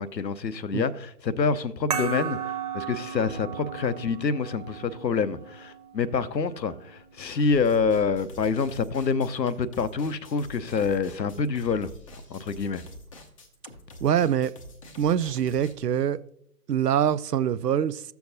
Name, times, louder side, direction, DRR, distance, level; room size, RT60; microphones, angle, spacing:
voice 1, 0.0-11.9 12.3-12.8, left 5 dB, 90° left, 0.8 m, -27 dB
sound 1, 1.9-7.0, right 7 dB, 25° right, 0.6 m, -36 dB
sound 2, 7.4-15.7, left 1 dB, 20° left, 0.6 m, -46 dB
voice 2, 14.0-14.5 15.0-16.2 16.7-18.0, right 9 dB, 75° right, 0.6 m, -24 dB
15.5 x 7.0 x 2.7 m
figure-of-eight pair, 135°, 49 cm